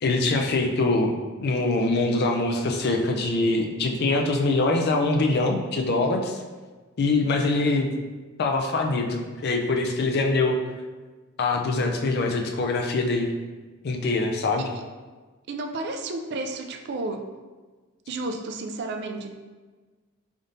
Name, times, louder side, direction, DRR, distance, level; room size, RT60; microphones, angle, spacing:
voice 1, 0.0-6.4 7.0-7.9 8.4-10.6 11.4-13.3 13.8-14.6, left 2 dB, 50° left, 3 dB, 0.4 m, -23 dB
voice 2, 15.5-17.3 18.1-19.3, right 2 dB, 55° right, 5 dB, 0.3 m, -32 dB
3.8 x 3.6 x 2.6 m, 1.3 s
head